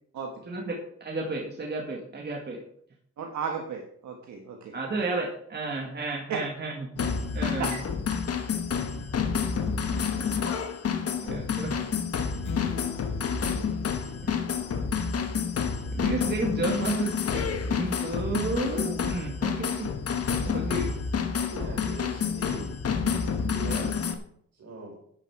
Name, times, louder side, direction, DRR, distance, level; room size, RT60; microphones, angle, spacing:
voice 1, 0.5-2.6 4.7-6.9 7.3-7.7 11.2-11.8 14.2-14.4 15.9-19.9 20.4-20.9 23.6-23.9, right 3 dB, 35° right, -1 dB, 1.9 m, -32 dB
voice 2, 3.2-5.0 6.3-6.4 7.6-7.8, right 6 dB, 75° right, 2 dB, 1.5 m, -34 dB
sound 1, 7.0-24.1, left 6 dB, 55° left, 1.4 m, -29 dB
sound 2, 12.4-15.1, left 8 dB, 75° left, 1.3 m, -41 dB
voice 3, 21.4-22.7 23.5-23.9 24.6-25.0, right 1 dB, 60° right, 0 dB, 5.1 m, -40 dB
10.5 x 9.2 x 4.9 m, 0.66 s
wide cardioid pair, 135°, 29 cm